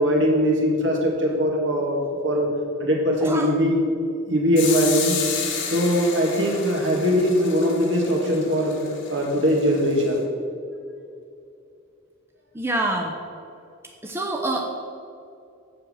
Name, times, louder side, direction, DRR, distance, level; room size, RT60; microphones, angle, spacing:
voice 1, 0.0-2.5 2.8-5.3 5.6-8.8 9.1-10.2, equal, 65° right, 0 dB, 1.9 m, -21 dB
sound 1, 4.6-10.2, left 6 dB, 80° left, 1.5 m, -32 dB
voice 2, 12.5-13.1 14.0-14.6, right 2 dB, 10° right, 1 dB, 0.7 m, -25 dB
7.5 x 7.4 x 6.3 m, 2.5 s
head